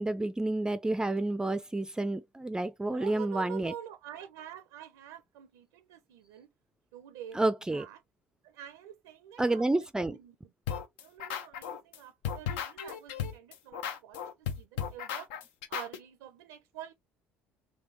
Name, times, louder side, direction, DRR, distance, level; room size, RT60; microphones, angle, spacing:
voice 1, 0.0-3.7 7.3-7.9 9.4-10.2, right 2 dB, 10° right, 0.4 m, -30 dB
voice 2, 2.9-6.5 6.9-7.4 7.7-8.0 8.4-9.6 10.0-10.5 11.0-15.3 15.7-16.9, right 10 dB, 80° right, 0.5 m, -47 dB
sound 1, 10.7-12.0 12.2-16.0, left 8 dB, 75° left, 0.5 m, -35 dB
3.3 x 2.7 x 2.5 m
hypercardioid pair, 60°, 6 cm